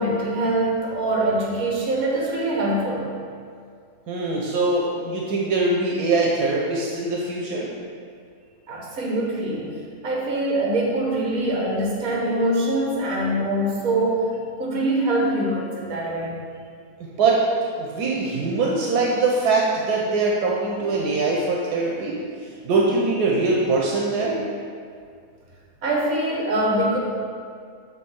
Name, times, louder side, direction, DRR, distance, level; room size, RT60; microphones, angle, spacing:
voice 1, 0.0-3.1 8.7-9.7 10.0-14.3 14.6-16.4 25.8-27.0, right 1 dB, 65° right, -3 dB, 1.8 m, -23 dB
voice 2, 4.1-7.7 17.2-17.4 17.8-22.2 22.6-24.4, right 3 dB, 85° right, -2 dB, 1.3 m, -22 dB
7.3 x 3.3 x 6.2 m, 2.2 s
omnidirectional pair, 1.6 m